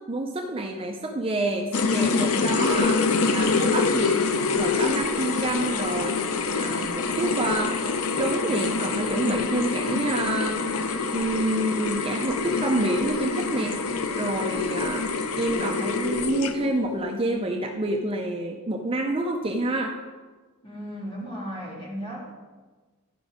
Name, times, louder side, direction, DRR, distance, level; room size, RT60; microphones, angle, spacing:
voice 1, 0.1-3.0 3.3-4.2 4.5-6.2 6.6-7.8 8.2-10.6 11.1-13.8 14.1-15.0 15.4-20.0, right 1 dB, 25° right, 2 dB, 0.6 m, -28 dB
sound 1, 1.7-16.8, left 4 dB, 70° left, 0.6 m, -26 dB
voice 2, 20.6-22.3, equal, 25° left, -5 dB, 2.8 m, -35 dB
12.5 x 5.2 x 5.0 m, 1.3 s
head